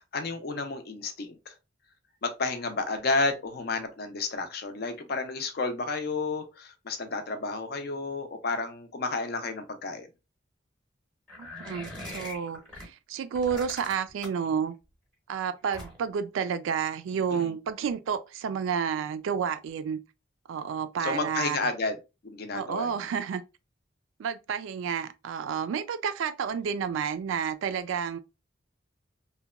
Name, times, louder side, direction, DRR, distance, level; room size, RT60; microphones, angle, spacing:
voice 1, 0.0-1.5 2.2-10.1 17.3-17.5 21.0-22.0 22.2-22.9, left 3 dB, 55° left, 0.5 m, -31 dB
sound 1, 11.3-12.9 13.3-14.5 15.7-16.2, left 1 dB, 5° left, 0.7 m, -41 dB
voice 2, 11.4-14.7 15.3-20.0 20.5-21.6 22.5-23.4 24.2-28.2, right 7 dB, 85° right, 0.3 m, -30 dB
2.8 x 2.2 x 2.3 m
head